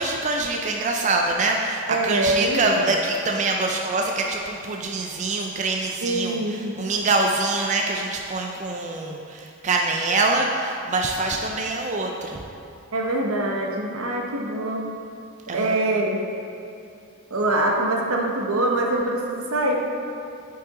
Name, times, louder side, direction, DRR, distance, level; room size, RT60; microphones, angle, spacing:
voice 1, 0.0-12.4 15.5-15.7, right 3 dB, 35° right, 1 dB, 0.4 m, -25 dB
voice 2, 1.9-3.0 6.0-6.8 12.9-14.8 15.5-16.2 17.3-19.7, right 1 dB, 80° right, 0 dB, 1.0 m, -24 dB
8.5 x 5.7 x 3.7 m, 2.5 s
head